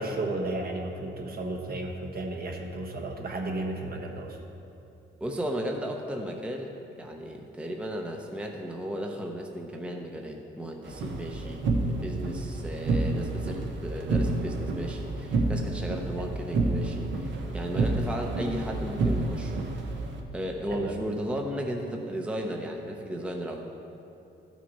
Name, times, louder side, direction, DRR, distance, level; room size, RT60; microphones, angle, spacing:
voice 1, 0.0-4.4 16.2-16.3 20.7-21.0, right 2 dB, 50° right, 2 dB, 1.3 m, -33 dB
voice 2, 5.2-19.5 20.3-23.6, equal, 5° right, 2 dB, 0.7 m, -35 dB
sound 1, 10.8-20.2, right 2 dB, 70° right, 1.0 m, -29 dB
12.5 x 6.0 x 4.2 m, 2.8 s
cardioid pair, 90°, 20 cm